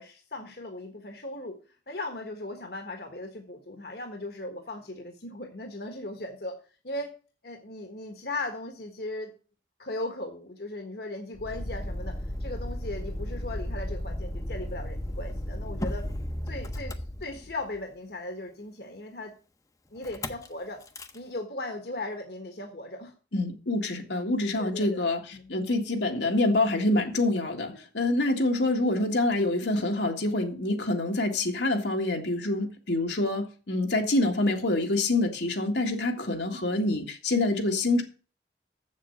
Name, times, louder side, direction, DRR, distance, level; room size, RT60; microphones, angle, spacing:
voice 1, 0.0-1.6 1.9-6.6 6.8-7.1 7.4-9.3 9.8-16.0 16.5-16.9 17.2-19.3 19.9-20.8 21.1-23.1 24.6-25.0 25.3-25.5, left 2 dB, 65° left, 1.4 m, -37 dB
Motor vehicle (road), 11.3-17.8 20.0-20.5 20.8-21.2, left 1 dB, 20° left, 0.7 m, -34 dB
voice 2, 23.3-38.0, left 2 dB, 80° left, 1.8 m, -26 dB
7.5 x 7.4 x 6.9 m
head